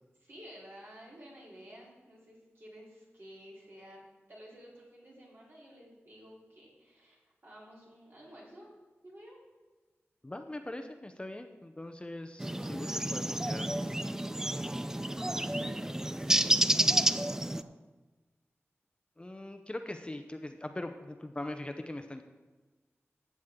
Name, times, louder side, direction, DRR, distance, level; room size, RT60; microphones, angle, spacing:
voice 1, 0.2-4.0 4.3-8.7 9.0-9.4 14.5-17.8, equal, 50° right, -5 dB, 3.7 m, -52 dB
voice 2, 10.2-14.0 19.2-22.2, left 1 dB, 20° left, 6 dB, 0.7 m, -41 dB
sound 1, 12.4-17.6, right 1 dB, 10° right, 0.3 m, -30 dB
14.5 x 8.3 x 3.7 m, 1.2 s
wide cardioid pair, 90°, 5 cm